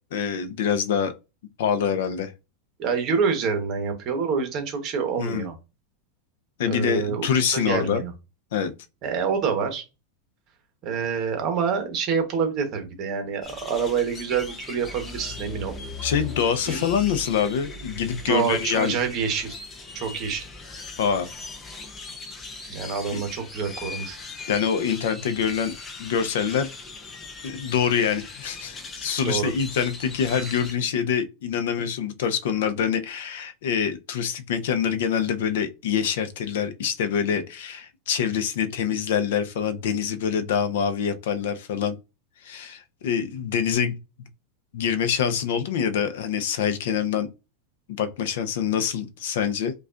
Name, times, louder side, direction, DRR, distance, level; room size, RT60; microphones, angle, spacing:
voice 1, 0.1-1.1 1.6-2.3 5.2-5.5 6.6-8.0 8.5-8.7 16.0-18.9 21.0-21.3 23.1-23.2 24.5-25.7 26.0-26.7 27.4-42.0 42.4-43.9 44.7-47.3 47.9-49.7, left 7 dB, 70° left, 0.5 m, -25 dB
voice 2, 2.8-5.5 6.7-8.1 9.0-9.8 10.8-15.7 16.7-16.8 18.3-19.6 19.9-20.4 22.7-24.2 29.2-29.5, right 6 dB, 35° right, 1.0 m, -27 dB
sound 1, 13.4-30.7, left 3 dB, 15° left, 0.5 m, -39 dB
4.9 x 2.3 x 2.4 m
supercardioid pair, 160°, 0 cm